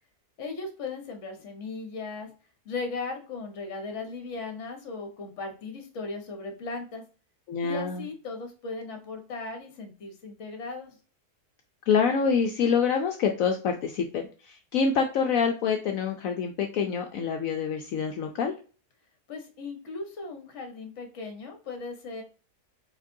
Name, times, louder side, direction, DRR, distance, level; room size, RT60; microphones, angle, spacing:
voice 1, 0.4-2.3 2.6-7.0 7.6-11.0 19.3-22.2, left 3 dB, 55° left, 4 dB, 1.3 m, -37 dB
voice 2, 7.5-8.0 11.9-18.5, left 6 dB, 70° left, 4 dB, 0.9 m, -26 dB
4.8 x 3.7 x 2.6 m, 0.36 s
omnidirectional pair, 1.6 m